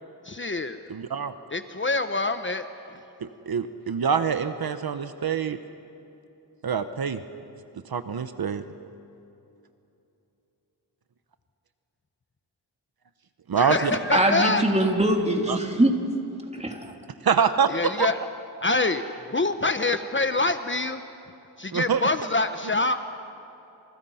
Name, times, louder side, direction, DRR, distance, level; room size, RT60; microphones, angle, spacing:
voice 1, 0.2-0.8 1.5-2.7 13.6-14.6 17.7-18.2 18.6-19.0 19.3-21.0 21.6-23.0, left 3 dB, 30° left, 9 dB, 1.1 m, -25 dB
voice 2, 0.9-1.3 3.2-5.6 6.6-7.2 7.9-8.6 13.5-13.9 15.5-15.6 17.2-18.1 21.7-22.1, right 6 dB, 65° right, 10 dB, 1.0 m, -25 dB
voice 3, 14.1-15.9 16.6-16.9, right 1 dB, 15° right, 2 dB, 3.4 m, -22 dB
28.0 x 27.0 x 5.7 m, 2.9 s
cardioid pair, 70°, 40 cm